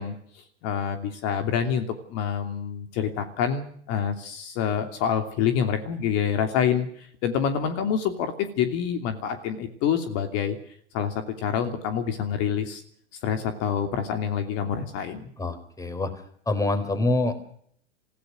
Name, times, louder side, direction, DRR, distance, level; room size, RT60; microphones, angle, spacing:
voice 1, 0.0-10.6 10.9-12.8 13.2-15.3, left 8 dB, 45° left, 7 dB, 2.9 m, -27 dB
voice 2, 15.4-17.5, left 2 dB, 10° left, 11 dB, 4.1 m, -26 dB
27.0 x 16.5 x 6.3 m, 0.62 s
hypercardioid pair, 105°, 34 cm